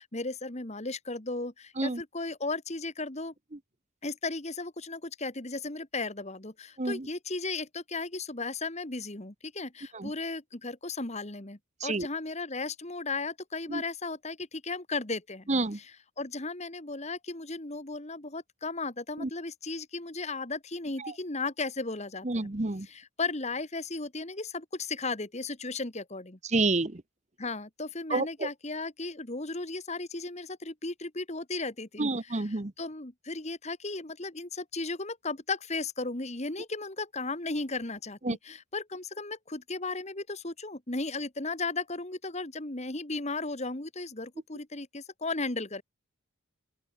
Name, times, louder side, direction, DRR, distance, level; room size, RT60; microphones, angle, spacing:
voice 1, 0.0-3.3 4.0-15.5 15.7-22.5 22.8-26.4 27.4-45.8, left 3 dB, 30° left, 1.6 m, -35 dB
voice 2, 15.5-15.8 19.2-19.3 21.0-21.1 22.2-22.9 26.5-27.0 28.1-28.5 32.0-32.7 38.2-38.4, right 2 dB, 30° right, 1.0 m, -29 dB
open air
head